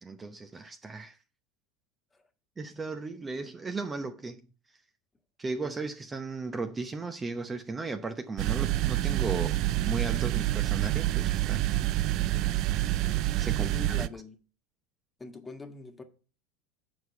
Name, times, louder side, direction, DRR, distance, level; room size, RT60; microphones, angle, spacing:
voice 1, 0.0-1.2 2.6-4.4 5.4-11.6 13.4-13.7, right 3 dB, 20° right, 0.8 m, -36 dB
sound 1, 8.4-14.1, right 15 dB, 55° right, 0.4 m, -27 dB
voice 2, 13.6-14.3 15.2-16.0, left 3 dB, 15° left, 1.6 m, -43 dB
7.8 x 4.7 x 6.8 m
hypercardioid pair, 85°, 0 cm